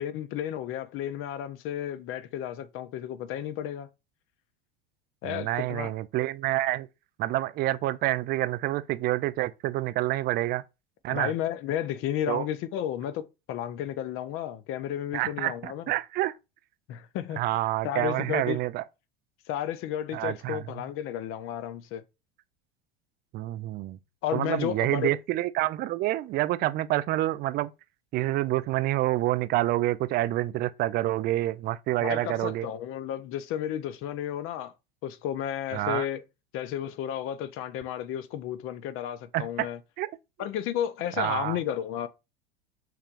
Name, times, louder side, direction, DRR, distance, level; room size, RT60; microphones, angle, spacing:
voice 1, 0.0-3.9 5.2-5.9 11.1-15.8 16.9-18.6 19.5-22.0 24.2-25.1 32.0-34.7 35.0-36.2 36.5-39.8 40.4-42.1, left 10 dB, 40° left, 0.6 m, -32 dB
voice 2, 5.2-6.9 7.2-10.6 11.0-11.3 12.3-12.4 15.1-16.3 17.4-18.8 20.1-20.6 23.3-24.0 24.3-27.7 28.1-32.7 35.7-36.1 39.3-39.4 40.0-40.1 41.2-41.6, right 16 dB, 30° right, 0.4 m, -28 dB
5.7 x 3.4 x 2.5 m
figure-of-eight pair, 80°, 33 cm